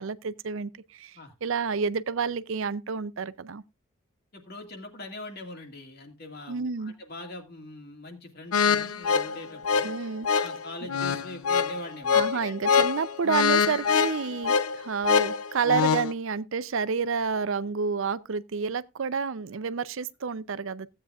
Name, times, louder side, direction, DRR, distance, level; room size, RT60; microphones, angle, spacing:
voice 1, 0.0-3.6 6.5-6.9 9.8-10.3 12.1-20.9, right 5 dB, 60° right, 0.5 m, -29 dB
voice 2, 4.3-9.9 10.3-12.8, left 1 dB, 45° left, 2.1 m, -42 dB
sound 1, 8.5-16.1, left 6 dB, 75° left, 0.5 m, -25 dB
16.0 x 8.8 x 2.4 m
head